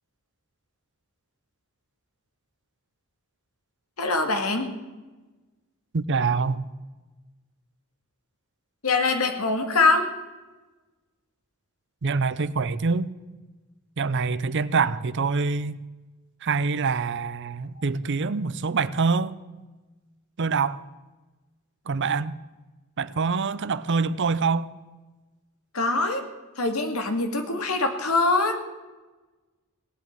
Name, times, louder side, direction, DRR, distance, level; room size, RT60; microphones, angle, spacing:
voice 1, 4.0-4.7 8.8-10.1 25.7-26.2 26.6-28.6, left 3 dB, 85° left, 2.2 m, -23 dB
voice 2, 5.9-6.6 12.0-13.1 14.0-15.8 16.4-19.4 20.4-20.8 21.9-22.4 23.0-24.7, right 4 dB, 55° right, 0.6 m, -25 dB
18.0 x 8.4 x 8.8 m
head